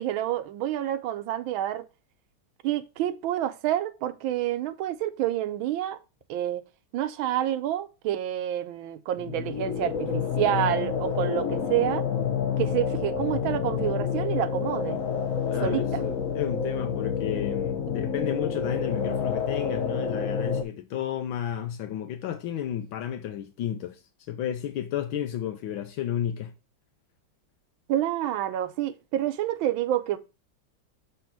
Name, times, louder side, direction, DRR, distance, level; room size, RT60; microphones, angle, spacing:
voice 1, 0.0-1.8 2.6-6.0 6.3-6.6 6.9-12.0 12.6-15.0 15.6-16.0 27.9-30.2, right 12 dB, 85° right, 1.5 m, -28 dB
sound 1, 9.2-20.6, left 6 dB, 50° left, 1.2 m, -28 dB
voice 2, 15.5-26.5, left 10 dB, 80° left, 1.5 m, -32 dB
6.9 x 3.3 x 5.9 m
omnidirectional pair, 2.2 m